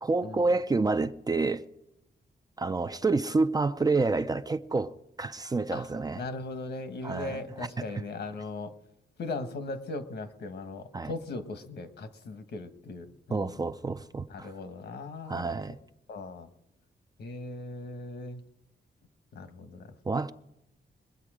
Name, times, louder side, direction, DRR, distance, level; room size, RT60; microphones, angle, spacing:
voice 1, 0.0-1.6 2.6-4.9 5.2-6.2 7.0-7.7 10.9-11.1 13.3-14.5 15.3-15.7 20.1-20.3, right 3 dB, 20° right, 0.4 m, -28 dB
voice 2, 6.1-8.7 9.2-13.6 14.3-15.5 16.1-16.5 17.2-18.4 19.3-19.9, left 3 dB, 70° left, 1.3 m, -38 dB
22.0 x 8.4 x 5.0 m
wide cardioid pair, 135°, 18 cm